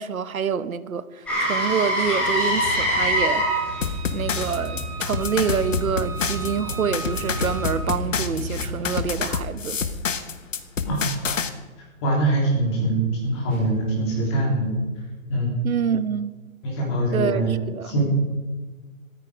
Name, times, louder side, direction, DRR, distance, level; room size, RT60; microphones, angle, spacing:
voice 1, 0.0-3.6 4.1-9.8 15.6-16.3 17.1-17.9, right 7 dB, 80° right, 1.0 m, -27 dB
Motor vehicle (road), 1.3-9.2 13.5-13.6, equal, 5° left, 2.6 m, -27 dB
Wind instrument woodwind instrument, 3.1-7.8, right 4 dB, 20° right, 3.1 m, -37 dB
sound 1, 3.8-11.5, left 6 dB, 65° left, 1.3 m, -28 dB
voice 2, 12.0-14.8 15.3-15.5 16.6-17.6 17.8-18.0, right 2 dB, 20° left, 3.2 m, -23 dB
14.0 x 13.5 x 4.9 m
hypercardioid pair, 170°, 42 cm